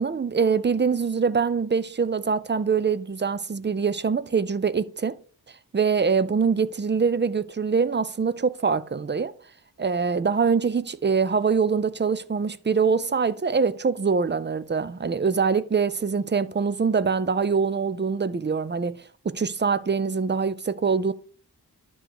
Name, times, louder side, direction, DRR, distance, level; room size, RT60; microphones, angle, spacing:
voice 1, 0.0-5.2 5.7-9.3 9.8-19.0 19.2-21.1, right 5 dB, 30° right, 0.4 m, -24 dB
11.0 x 3.8 x 4.7 m
wide cardioid pair, 85°, 40 cm